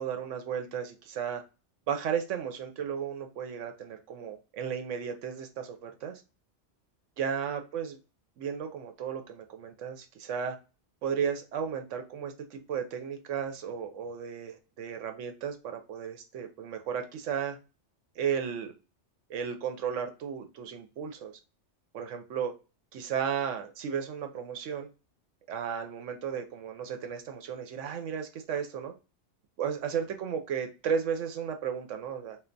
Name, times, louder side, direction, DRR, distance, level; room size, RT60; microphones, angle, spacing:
voice 1, 0.0-1.4 1.9-6.2 7.2-8.0 8.4-10.6 11.0-17.6 18.2-18.7 19.3-21.3 21.9-22.5 22.9-24.9 25.5-28.9 29.6-32.4, right 7 dB, 85° right, 6 dB, 1.0 m, -34 dB
3.3 x 2.4 x 3.8 m, 0.31 s
omnidirectional pair, 1.2 m